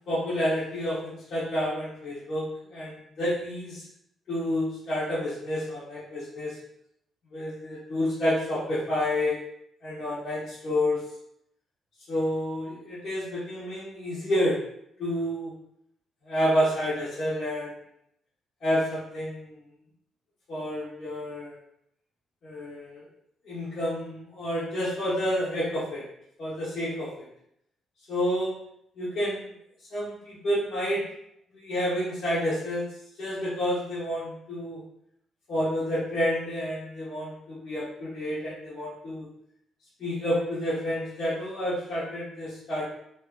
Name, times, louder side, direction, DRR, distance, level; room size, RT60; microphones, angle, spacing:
voice 1, 0.1-3.8 4.3-6.6 7.3-9.4 9.8-11.0 12.1-14.6 15.0-15.5 16.2-17.7 18.6-19.5 20.5-21.5 22.4-23.0 23.4-26.0 26.4-27.3 28.1-28.5 29.0-29.4 29.9-31.0 31.5-32.9 33.2-34.8 35.5-39.3 40.0-42.8, equal, 65° left, -10 dB, 0.9 m, -29 dB
2.6 x 2.2 x 2.3 m, 0.75 s
cardioid pair, 90°, 0 cm